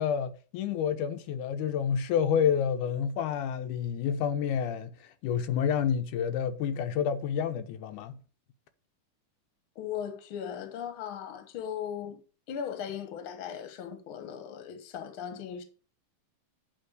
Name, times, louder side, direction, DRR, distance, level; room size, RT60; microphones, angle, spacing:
voice 1, 0.0-8.1, left 8 dB, 85° left, 2.1 m, -29 dB
voice 2, 9.7-12.2 12.5-15.6, left 8 dB, 55° left, 1.7 m, -38 dB
9.6 x 3.5 x 6.6 m
omnidirectional pair, 3.5 m